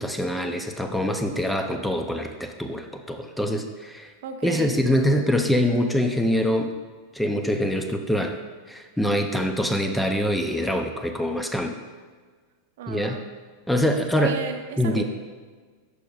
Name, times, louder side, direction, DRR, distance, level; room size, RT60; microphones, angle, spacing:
voice 1, 0.0-4.1 4.4-6.7 7.1-8.4 8.7-11.7 12.9-13.2 13.7-14.4 14.8-15.0, equal, ahead, 5 dB, 0.4 m, -24 dB
voice 2, 4.2-4.7 12.8-13.3 14.1-15.0, right 6 dB, 75° right, 6 dB, 0.7 m, -34 dB
11.5 x 4.9 x 2.3 m, 1.5 s
supercardioid pair, 150°, 0 cm